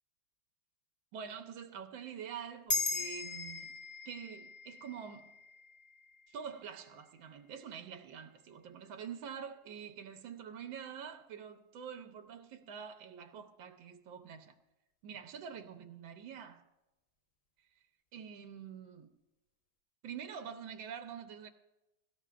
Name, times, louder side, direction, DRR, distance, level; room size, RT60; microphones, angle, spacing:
voice 1, 1.1-3.8 4.0-5.3 6.3-14.5 15.0-16.6 18.1-19.1 20.0-21.5, right 7 dB, 80° right, 1.6 m, -46 dB
sound 1, 2.7-7.4, left 3 dB, 35° left, 0.6 m, -39 dB
23.0 x 12.5 x 2.4 m
omnidirectional pair, 2.0 m